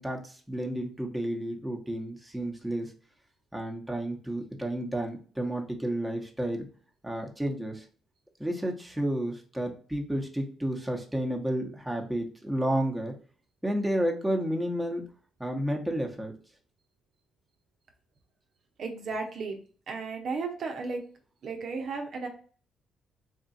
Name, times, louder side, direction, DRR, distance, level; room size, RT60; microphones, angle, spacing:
voice 1, 0.0-2.9 3.5-6.7 7.0-7.8 8.4-13.1 13.6-15.0 15.4-16.3, right 1 dB, 5° right, 1 dB, 1.0 m, -31 dB
voice 2, 18.8-19.6 19.9-21.0 21.4-22.3, right 4 dB, 60° right, 3 dB, 0.8 m, -34 dB
3.6 x 2.4 x 4.0 m, 0.41 s
cardioid pair, 90°, 0 cm